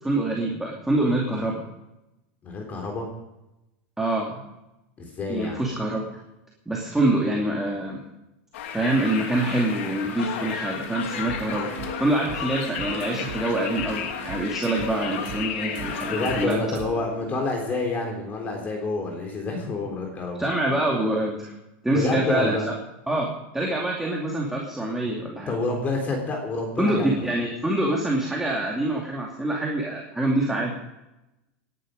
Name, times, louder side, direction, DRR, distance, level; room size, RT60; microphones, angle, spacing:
voice 1, 0.0-1.6 4.0-4.4 5.3-6.0 6.7-8.0 8.7-16.6 20.4-21.5 21.8-22.7 23.1-25.5 26.8-30.8, right 1 dB, 5° right, -2 dB, 2.5 m, -25 dB
voice 2, 2.4-3.1 5.0-5.6 16.1-20.4 21.9-22.7 25.5-27.3, left 3 dB, 25° left, 2 dB, 3.7 m, -28 dB
Conversation, 8.5-16.5, left 7 dB, 85° left, 2.7 m, -33 dB
sound 1, 10.9-18.3, right 3 dB, 60° right, 6.5 m, -39 dB
19.0 x 11.5 x 5.2 m, 0.93 s
supercardioid pair, 145°, 7 cm